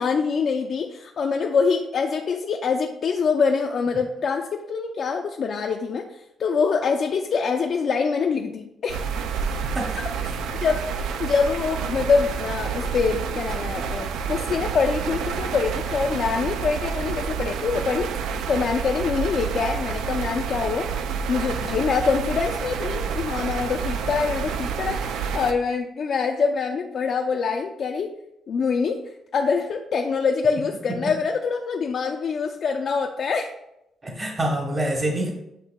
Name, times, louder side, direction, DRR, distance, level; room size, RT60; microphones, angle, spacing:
voice 1, 0.0-9.1 10.6-10.8 11.2-20.9 21.3-28.1 28.5-33.5, left 5 dB, 55° left, 3 dB, 0.4 m, -25 dB
sound 1, 8.9-25.5, right 6 dB, 85° right, 0.3 m, -29 dB
voice 2, 9.6-9.9 34.0-35.3, right 1 dB, 30° right, 1 dB, 0.8 m, -26 dB
8.0 x 2.7 x 2.2 m, 0.83 s
cardioid pair, 90°, 0 cm